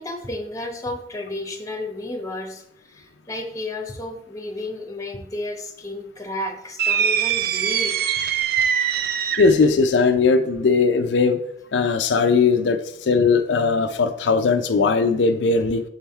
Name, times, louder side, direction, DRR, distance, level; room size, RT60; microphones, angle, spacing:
voice 1, 0.0-8.0, left 1 dB, 20° left, 3 dB, 1.0 m, -32 dB
sound 1, 6.8-9.7, right 8 dB, 55° right, 0.4 m, -22 dB
voice 2, 9.4-11.4 11.7-15.8, left 4 dB, 85° left, 7 dB, 0.4 m, -19 dB
6.3 x 3.4 x 4.3 m, 0.75 s
head